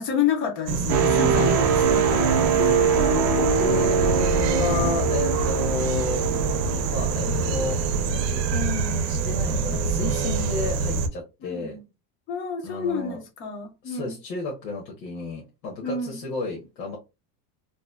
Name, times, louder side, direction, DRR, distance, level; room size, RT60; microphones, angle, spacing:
voice 1, 0.0-2.6 11.4-11.8 12.3-14.1 15.8-16.2, left 6 dB, 30° left, 0.3 m, -29 dB
sound 1, 0.7-11.1, right 4 dB, 90° right, 0.7 m, -26 dB
sound 2, 0.9-8.7 9.2-9.4, right 7 dB, 35° right, 0.4 m, -24 dB
Guitar, 2.6-7.3, left 5 dB, 60° left, 0.7 m, -33 dB
voice 2, 3.3-6.2 6.9-7.8 8.1-11.8 12.6-13.2 13.8-17.0, left 3 dB, 90° left, 1.1 m, -31 dB
3.0 x 2.2 x 2.3 m
supercardioid pair, 150°, 48 cm